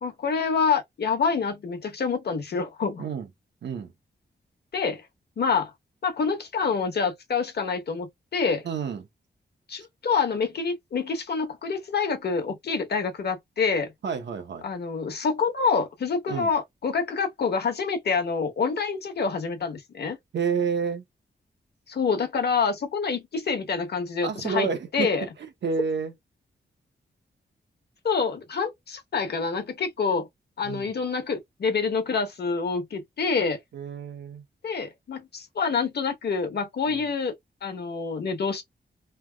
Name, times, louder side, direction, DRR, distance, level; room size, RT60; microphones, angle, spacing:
voice 1, 0.0-3.0 4.7-5.0 5.4-5.7 6.0-8.6 9.7-13.9 14.6-20.2 21.9-24.7 24.9-25.2 28.0-30.3 30.6-33.6 34.6-37.3 37.6-38.6, left 5 dB, 60° left, 1.0 m, -27 dB
voice 2, 3.6-3.9 8.6-9.1 14.0-14.6 16.3-16.5 20.3-21.1 24.2-26.1 30.6-30.9 33.7-34.4 36.9-37.1, right 5 dB, 75° right, 0.8 m, -30 dB
3.3 x 2.4 x 2.2 m
wide cardioid pair, 130°, 19 cm